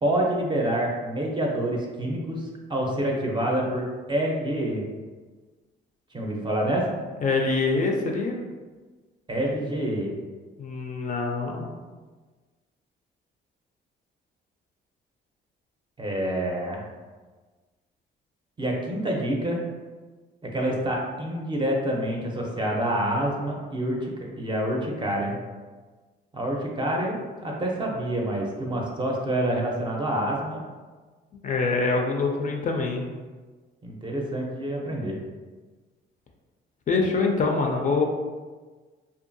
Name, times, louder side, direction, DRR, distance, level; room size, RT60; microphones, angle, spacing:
voice 1, 0.0-4.8 6.1-6.9 9.3-10.1 16.0-16.9 18.6-19.6 20.4-24.1 24.4-25.4 26.3-30.6 33.8-35.2, right 1 dB, 25° right, -1 dB, 0.5 m, -27 dB
voice 2, 7.2-8.4 10.6-11.7 31.4-33.0 36.9-38.1, left 3 dB, 40° left, 1 dB, 0.4 m, -25 dB
2.6 x 2.3 x 2.6 m, 1.4 s
cardioid pair, 90°, 20 cm